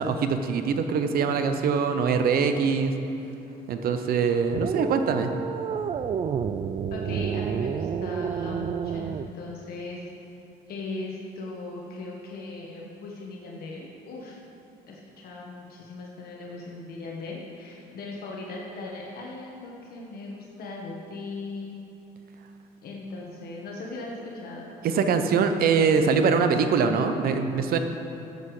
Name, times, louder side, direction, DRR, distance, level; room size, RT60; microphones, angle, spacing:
voice 1, 0.0-2.9 3.7-5.3 24.8-27.8, right 5 dB, 60° right, 8 dB, 0.9 m, -23 dB
sound 1, 4.5-9.3, right 7 dB, 35° right, 0.4 m, -30 dB
voice 2, 6.9-10.0 10.7-14.4 14.9-21.8 22.8-24.7, left 3 dB, 65° left, -2 dB, 1.5 m, -38 dB
13.0 x 8.1 x 4.9 m, 2.9 s
cardioid pair, 110°, 17 cm